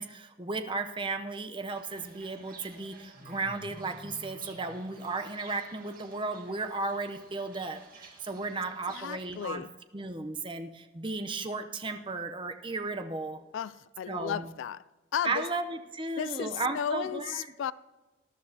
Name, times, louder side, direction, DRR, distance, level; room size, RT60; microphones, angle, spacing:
voice 1, 0.0-9.6 9.9-13.4 14.1-14.5 15.2-17.5, right 3 dB, 25° right, 0.7 m, -35 dB
Fowl / Bird, 1.7-9.6, right 2 dB, 45° right, 2.0 m, -51 dB
voice 2, 8.9-9.7 13.5-14.8 15.1-15.5 16.2-17.7, left 8 dB, 80° left, 0.3 m, -34 dB
19.5 x 12.0 x 2.8 m
head